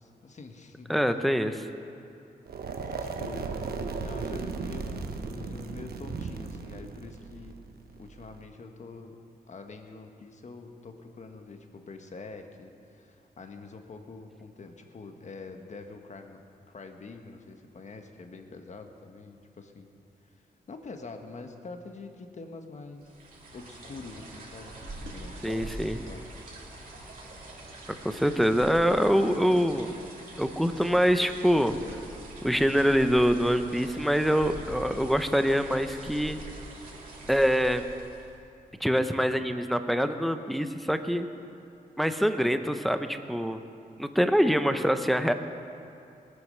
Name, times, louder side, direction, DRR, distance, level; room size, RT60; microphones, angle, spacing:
voice 1, 0.0-0.9 3.0-3.6 4.0-7.6 8.0-9.2 9.5-16.4 16.7-19.9 20.2-23.1 23.5-25.7 26.1-26.2 26.5-26.9, left 3 dB, 50° left, 5 dB, 1.3 m, -45 dB
voice 2, 0.9-1.7 25.4-26.0 28.0-29.9 30.4-31.7 32.4-36.4 37.3-37.8 38.8-41.3 42.0-43.6 44.0-45.3, equal, ahead, 8 dB, 0.7 m, -25 dB
sound 1, 2.5-8.4, right 4 dB, 80° right, 1.0 m, -36 dB
sound 2, 23.0-38.4, right 2 dB, 60° right, 3.3 m, -44 dB
19.0 x 9.5 x 6.7 m, 2.6 s
wide cardioid pair, 105°, 16 cm